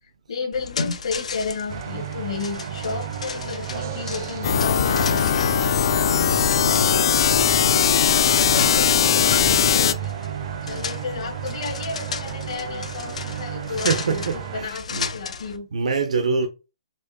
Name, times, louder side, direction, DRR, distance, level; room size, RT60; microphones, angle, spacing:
voice 1, 0.0-5.3 6.6-10.1 10.6-14.2 14.5-15.7, left 5 dB, 65° left, 1.0 m, -32 dB
sound 1, 0.5-15.6, left 5 dB, 85° left, 0.7 m, -35 dB
sound 2, 1.7-14.7, right 9 dB, 30° right, 0.4 m, -33 dB
sound 3, 4.4-9.9, left 8 dB, 40° left, 0.3 m, -19 dB
voice 2, 13.7-15.1 15.7-16.5, right 5 dB, 80° right, 0.6 m, -26 dB
4.5 x 3.0 x 2.7 m
hypercardioid pair, 180°, 3 cm